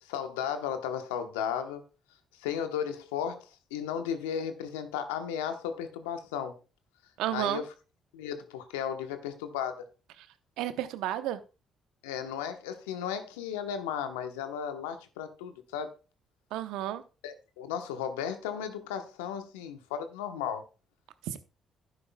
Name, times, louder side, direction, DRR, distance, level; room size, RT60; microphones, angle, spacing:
voice 1, 0.0-1.9 2.4-6.6 7.3-7.7 8.1-9.9 12.0-15.9 17.2-20.6, left 8 dB, 90° left, 1.0 m, -35 dB
voice 2, 7.2-7.6 10.6-11.4 16.5-17.0 21.3-21.4, right 13 dB, 80° right, 0.8 m, -31 dB
11.5 x 9.9 x 2.2 m
hypercardioid pair, 50°, 0 cm